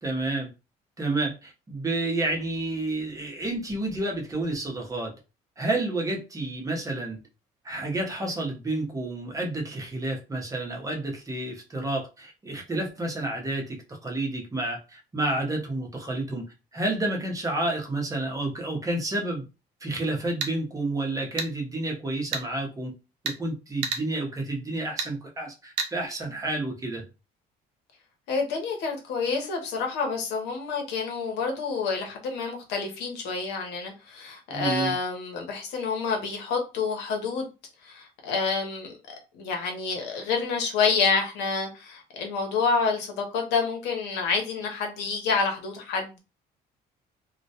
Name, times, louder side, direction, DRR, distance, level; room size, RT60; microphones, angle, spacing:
voice 1, 0.0-0.5 1.0-5.1 5.6-7.2 7.6-19.4 19.8-22.9 23.2-27.0 34.5-34.9, right 2 dB, 20° right, 0.7 m, -30 dB
sound 1, 20.2-20.5 21.4-21.5 22.3-22.5 23.3-23.4 23.8-24.0 25.0-25.1 25.8-25.9, right 5 dB, 85° right, 0.6 m, -29 dB
voice 2, 28.3-37.5 37.8-38.9 39.3-46.2, left 4 dB, 90° left, 0.8 m, -28 dB
2.2 x 2.1 x 2.7 m
cardioid pair, 110°, 17 cm